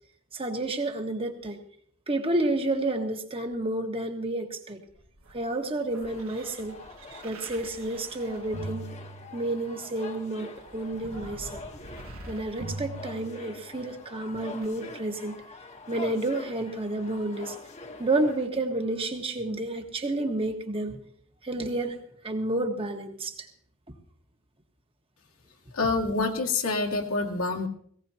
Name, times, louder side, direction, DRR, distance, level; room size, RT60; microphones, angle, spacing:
voice 1, 0.3-1.6 2.1-4.8 5.3-6.7 7.2-8.8 9.3-11.6 12.3-15.4 15.9-17.6 18.0-21.0 21.4-22.0 22.2-23.3, right 2 dB, 25° right, 4 dB, 1.5 m, -30 dB
sound 1, 4.9-9.8 10.5-13.9 14.6-14.7, right 2 dB, 75° right, 1.5 m, -43 dB
sound 2, 6.1-18.5, left 3 dB, 35° left, 1.2 m, -45 dB
voice 2, 25.7-27.7, left 3 dB, 80° left, 1 dB, 2.2 m, -27 dB
18.5 x 17.5 x 2.9 m, 0.62 s
head